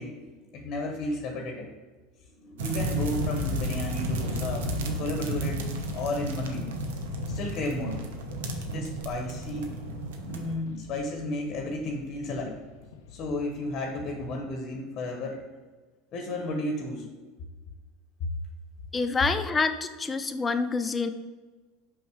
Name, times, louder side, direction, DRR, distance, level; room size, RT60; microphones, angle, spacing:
voice 1, 0.0-1.7 2.4-6.7 7.3-8.0 8.6-9.7 10.2-12.6 13.1-15.4 16.1-17.1 18.2-18.3, left 2 dB, 50° left, 3 dB, 1.1 m, -33 dB
sound 1, 2.6-10.6, right 4 dB, 85° right, 0.9 m, -34 dB
sound 2, 2.8-14.3, left 5 dB, 80° left, 0.6 m, -38 dB
voice 2, 18.9-21.1, left 4 dB, 20° left, 9 dB, 0.6 m, -27 dB
5.6 x 5.4 x 4.8 m, 1.3 s
hypercardioid pair, 95°, 0 cm